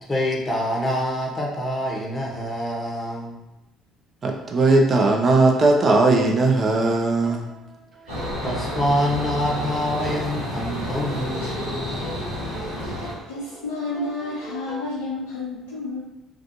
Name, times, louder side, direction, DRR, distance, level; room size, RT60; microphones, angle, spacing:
voice 1, 0.1-3.4 8.4-12.1, left 1 dB, 25° left, -2 dB, 0.7 m, -26 dB
voice 2, 4.2-7.5, right 2 dB, 40° right, 1 dB, 0.5 m, -18 dB
sound 1, 7.2-14.9, right 2 dB, 60° right, 1.4 m, -42 dB
sound 2, 8.1-13.1, left 1 dB, 90° right, 0.8 m, -30 dB
voice 3, 13.3-16.0, left 2 dB, 90° left, -7 dB, 0.4 m, -30 dB
2.4 x 2.3 x 2.6 m, 0.95 s
hypercardioid pair, 55°, 0 cm